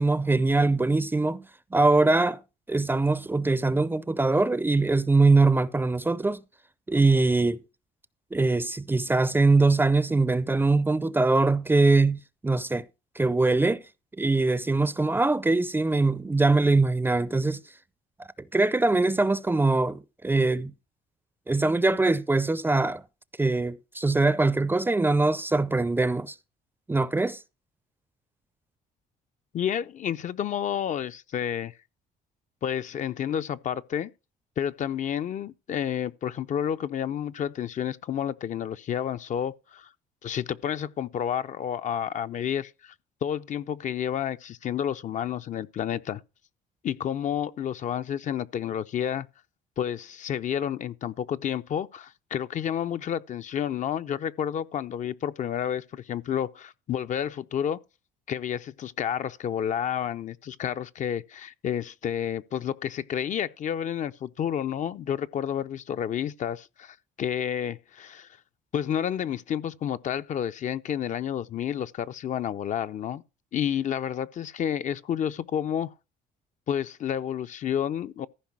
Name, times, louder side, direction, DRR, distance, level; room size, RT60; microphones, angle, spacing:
voice 1, 0.0-1.4 1.7-2.4 2.7-6.4 6.9-7.6 8.3-12.8 13.2-13.8 14.2-17.6 18.5-20.7 21.5-23.0 23.4-26.4 26.9-27.4, right 3 dB, 10° right, 0.5 m, -22 dB
voice 2, 29.5-31.7 32.6-34.1 34.6-39.9 40.2-42.9 43.2-46.2 46.8-49.3 49.8-57.8 58.3-68.3 68.7-73.2 73.5-75.9 76.7-78.3, left 9 dB, 50° left, 0.6 m, -30 dB
14.5 x 5.0 x 6.0 m
cardioid pair, 110°, 17 cm